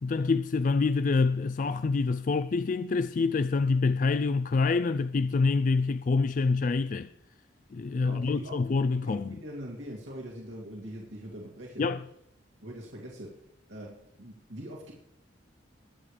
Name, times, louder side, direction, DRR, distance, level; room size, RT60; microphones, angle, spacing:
voice 1, 0.0-7.1 7.7-9.3 11.8-12.0, left 4 dB, 40° left, 0.3 m, -26 dB
voice 2, 8.0-11.9 12.6-13.4 13.7-14.9, equal, 85° right, 2.5 m, -42 dB
21.5 x 8.8 x 3.4 m
head